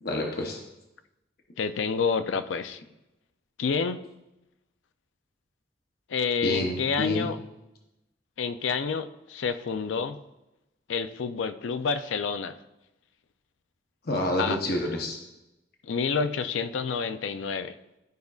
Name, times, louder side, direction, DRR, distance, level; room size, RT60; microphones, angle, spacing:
voice 1, 0.0-0.6 6.4-7.3 14.0-15.2, left 1 dB, 55° left, 1 dB, 0.8 m, -28 dB
voice 2, 1.6-2.8 3.6-4.0 6.1-7.4 8.4-10.2 10.9-12.6 14.4-14.6 15.8-17.8, left 5 dB, 90° left, 11 dB, 0.4 m, -28 dB
12.0 x 5.1 x 2.4 m, 0.95 s
head